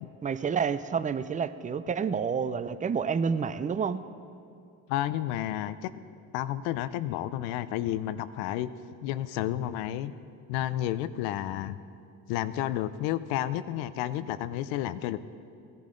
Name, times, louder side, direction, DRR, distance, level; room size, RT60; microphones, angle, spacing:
voice 1, 0.2-4.0, right 6 dB, 20° right, 14 dB, 0.4 m, -29 dB
voice 2, 4.9-5.9 6.3-8.7 9.0-10.1 10.5-11.8 12.3-15.2, left 13 dB, 90° left, 14 dB, 0.6 m, -31 dB
16.5 x 10.5 x 3.8 m, 2.5 s
supercardioid pair, 85°, 37 cm